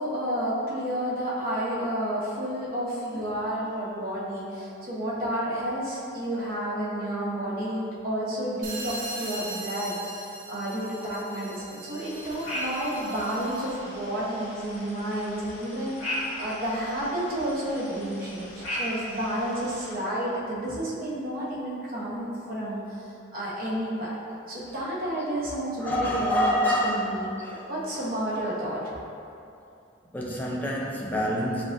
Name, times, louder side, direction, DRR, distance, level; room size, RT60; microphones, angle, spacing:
voice 1, 0.0-24.2 24.5-26.4 26.8-27.3 27.7-28.9, right 1 dB, 45° right, -6 dB, 1.0 m, -31 dB
sound 1, 8.6-13.8, right 2 dB, 75° right, 0.7 m, -40 dB
sound 2, 12.0-20.0, left 1 dB, 80° left, 1.2 m, -38 dB
voice 2, 25.8-28.0 28.8-28.9 30.1-31.6, equal, 10° left, -4 dB, 0.4 m, -28 dB
7.3 x 2.5 x 2.6 m, 2.7 s
head